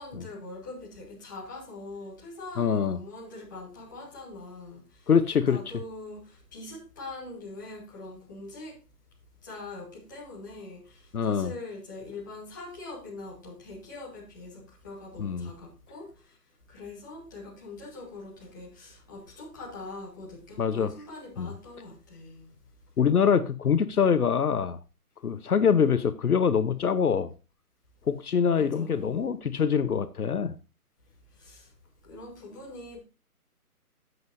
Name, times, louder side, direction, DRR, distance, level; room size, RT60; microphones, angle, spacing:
voice 1, 0.0-5.1 5.5-8.8 9.4-16.4 16.7-22.5 28.5-29.3 31.3-31.7 32.0-33.0, left 2 dB, 10° left, 1.9 m, -43 dB
voice 2, 2.6-3.0 5.1-5.6 11.1-11.5 15.2-15.5 20.6-20.9 21.4-21.5 23.0-24.8 25.2-27.3 28.1-30.5, left 7 dB, 70° left, 0.9 m, -24 dB
12.0 x 7.9 x 2.6 m
hypercardioid pair, 175°, 46 cm